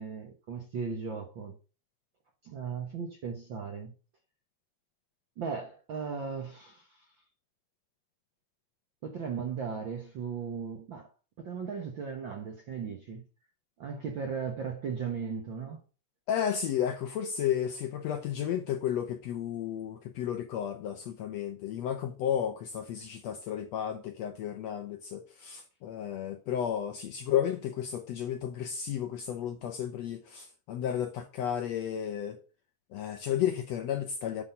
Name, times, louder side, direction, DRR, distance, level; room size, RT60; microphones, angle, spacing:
voice 1, 0.0-1.6 2.4-3.9 5.4-7.1 9.0-11.1 11.4-13.3 13.8-15.8, right 6 dB, 70° right, 1.1 m, -37 dB
voice 2, 16.3-32.4 32.9-34.4, left 9 dB, 75° left, 1.6 m, -33 dB
9.3 x 4.2 x 5.6 m
omnidirectional pair, 3.8 m